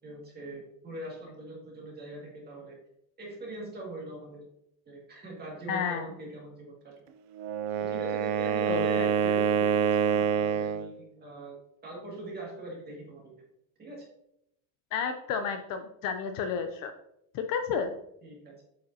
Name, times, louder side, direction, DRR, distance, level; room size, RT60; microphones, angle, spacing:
voice 1, 0.0-2.8 3.2-4.4 4.9-6.8 7.8-11.6 11.8-13.3 13.8-14.1 18.2-18.5, right 2 dB, 20° right, -3 dB, 2.0 m, -42 dB
voice 2, 5.7-6.1 8.7-9.1 14.9-16.9 17.3-17.9, left 6 dB, 50° left, 7 dB, 0.5 m, -31 dB
Wind instrument woodwind instrument, 7.3-10.9, right 7 dB, 55° right, 0.6 m, -26 dB
8.3 x 5.1 x 2.7 m, 0.79 s
cardioid pair, 180°, 45 cm